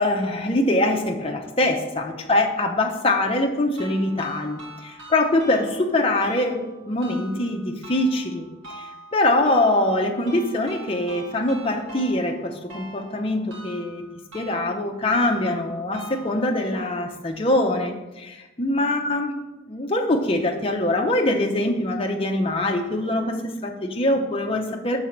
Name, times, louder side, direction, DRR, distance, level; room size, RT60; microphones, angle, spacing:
voice 1, 0.0-8.5 9.1-14.0 14.3-19.3 19.7-25.0, left 1 dB, 25° left, 2 dB, 0.6 m, -23 dB
sound 1, 3.8-16.7, right 1 dB, 75° right, 2.0 m, -43 dB
6.3 x 4.0 x 5.8 m, 1.1 s
head